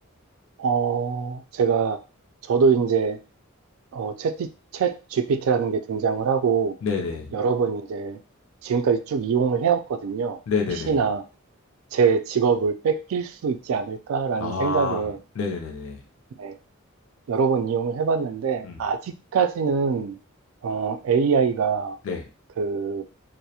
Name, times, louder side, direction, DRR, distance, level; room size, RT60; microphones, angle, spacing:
voice 1, 0.6-2.0 2.4-3.2 3.9-6.8 7.3-8.2 8.6-10.4 10.9-11.2 11.9-15.2 16.4-16.5 17.3-20.2 20.6-22.0 22.6-23.0, right 6 dB, 70° right, 9 dB, 0.3 m, -23 dB
voice 2, 6.8-7.4 10.5-11.0 14.4-15.1 15.3-16.0 18.6-18.8 22.0-22.2, left 4 dB, 65° left, 1 dB, 0.4 m, -28 dB
2.3 x 2.0 x 2.7 m, 0.33 s
head